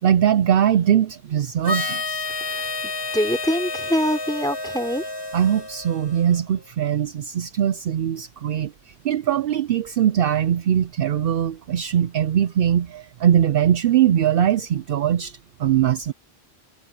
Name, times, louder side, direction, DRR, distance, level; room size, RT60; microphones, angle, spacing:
voice 1, 0.0-2.2 5.3-8.7 9.0-16.1, right 10 dB, 65° right, 0.7 m, -21 dB
Harmonica, 1.6-6.4, left 3 dB, 20° left, 4.5 m, -30 dB
voice 2, 3.1-5.0, equal, 5° left, 3.5 m, -24 dB
omnidirectional pair, 1.1 m